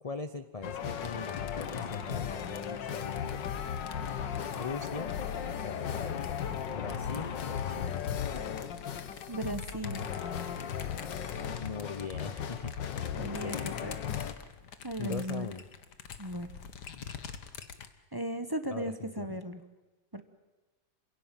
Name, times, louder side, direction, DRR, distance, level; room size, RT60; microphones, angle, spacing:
voice 1, 0.0-3.5 4.5-5.1 5.6-6.2 6.7-8.0 11.6-13.9 15.0-15.6 16.9-17.2 18.7-19.3, left 4 dB, 45° left, 10 dB, 0.5 m, -41 dB
sound 1, 0.6-14.3, left 8 dB, 85° left, 1.9 m, -36 dB
sound 2, 0.7-5.5 6.1-17.9, left 7 dB, 70° left, 1.9 m, -47 dB
voice 2, 9.3-10.0 13.2-14.0 14.8-15.5 16.2-16.5 18.1-19.6 20.1-20.2, right 1 dB, 15° right, 9 dB, 0.9 m, -36 dB
27.5 x 16.5 x 9.1 m, 1.1 s
omnidirectional pair, 1.9 m